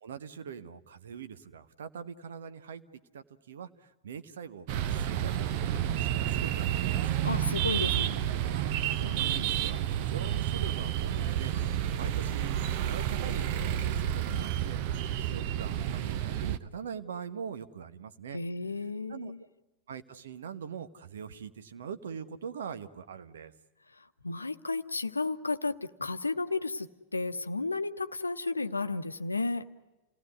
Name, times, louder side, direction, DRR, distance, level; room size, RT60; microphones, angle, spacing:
voice 1, 0.0-2.8 3.1-7.0 7.8-8.0 8.3-11.5 12.0-14.8 15.2-18.4 19.1-19.3 19.9-23.5, right 7 dB, 65° right, 11 dB, 1.2 m, -43 dB
sound 1, 4.7-16.6, right 11 dB, 45° right, 0.8 m, -30 dB
voice 2, 7.2-8.2 18.3-19.4 24.2-29.7, left 3 dB, 80° left, 11 dB, 0.8 m, -33 dB
28.5 x 17.5 x 9.6 m, 1.1 s
figure-of-eight pair, 90°, 0 cm